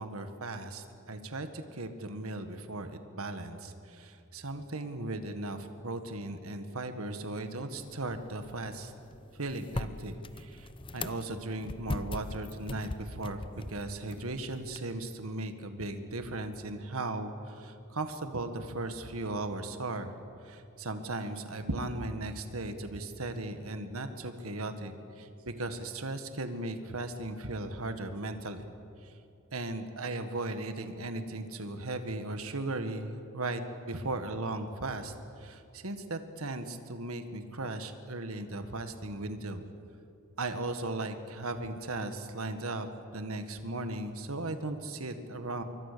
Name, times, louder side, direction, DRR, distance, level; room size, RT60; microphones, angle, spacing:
voice 1, 0.0-8.9 9.3-20.2 20.4-28.6 29.0-29.1 29.5-39.6 40.4-42.9 43.1-45.6, right 2 dB, 90° right, 8 dB, 1.7 m, -37 dB
sound 1, 7.8-14.8, left 2 dB, 25° left, 0.7 m, -41 dB
26.0 x 23.5 x 6.9 m, 2.6 s
head